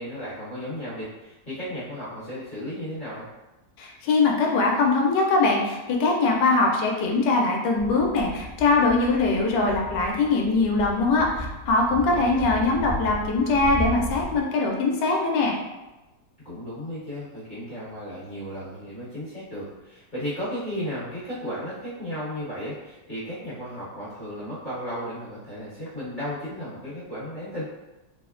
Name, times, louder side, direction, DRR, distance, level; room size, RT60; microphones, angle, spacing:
voice 1, 0.0-3.3 12.1-12.5 16.4-27.6, equal, 30° left, -12 dB, 1.2 m, -34 dB
voice 2, 3.8-15.6, left 3 dB, 80° left, 0 dB, 1.2 m, -22 dB
sound 1, 7.8-14.4, equal, 55° right, 0.9 m, -35 dB
3.4 x 2.1 x 2.4 m, 1.0 s
omnidirectional pair, 1.8 m